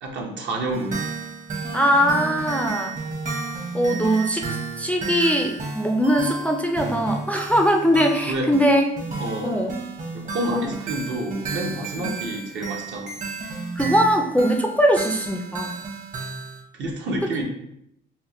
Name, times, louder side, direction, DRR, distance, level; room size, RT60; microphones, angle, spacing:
voice 1, 0.0-1.1 8.2-8.5 9.2-9.6 10.1-13.2 16.7-17.4, right 1 dB, 65° right, 0 dB, 0.8 m, -29 dB
sound 1, 0.7-16.6, right 4 dB, 40° right, 1.0 m, -32 dB
voice 2, 1.7-3.0 3.7-8.9 9.4-9.7 10.5-10.7 12.0-12.1 13.8-15.8, equal, 5° left, 2 dB, 0.3 m, -21 dB
4.2 x 2.1 x 2.9 m, 0.76 s
cardioid pair, 90°, 20 cm